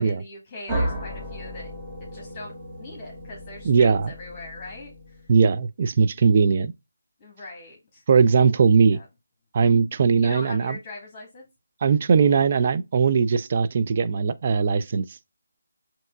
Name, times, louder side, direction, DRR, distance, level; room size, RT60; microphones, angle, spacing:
voice 1, 0.0-1.7 2.0-2.5 2.8-5.2 7.2-8.0 8.8-9.1 10.2-11.5, left 2 dB, 20° left, 1.4 m, -41 dB
sound 1, 0.7-5.4, right 1 dB, 10° right, 1.0 m, -34 dB
voice 2, 3.6-4.1 5.3-6.7 8.1-9.0 9.5-10.8 11.8-15.1, right 5 dB, 35° right, 0.4 m, -19 dB
7.5 x 2.9 x 2.2 m
figure-of-eight pair, 155°, 0 cm